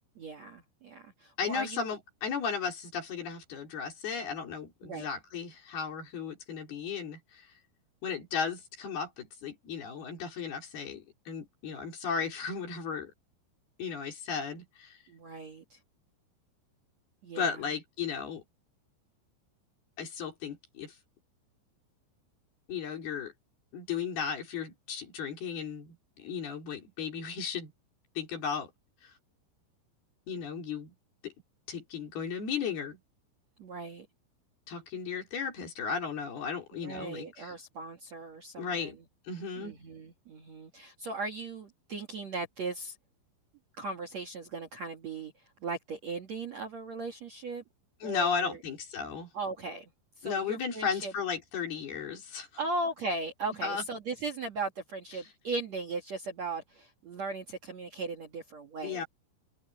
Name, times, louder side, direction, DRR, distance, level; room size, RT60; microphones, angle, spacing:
voice 1, 0.2-1.9 4.8-5.1 15.1-15.8 17.2-17.7 33.6-34.1 36.7-38.9 39.6-42.9 43.8-45.3 45.6-47.6 48.0-48.6 49.3-49.9 50.2-51.1 52.6-59.0, right 3 dB, 55° right, 2.0 m, -38 dB
voice 2, 1.4-7.5 8.0-13.1 13.8-15.0 17.4-18.4 20.0-20.9 22.7-23.3 23.7-27.7 28.2-28.7 29.0-29.1 30.3-30.9 31.2-31.3 31.7-33.0 34.7-37.5 38.6-39.0 39.3-39.7 48.0-49.3 50.2-52.5 53.6-53.8 58.8-59.1, left 6 dB, 50° left, 6.1 m, -35 dB
omnidirectional pair, 5.9 m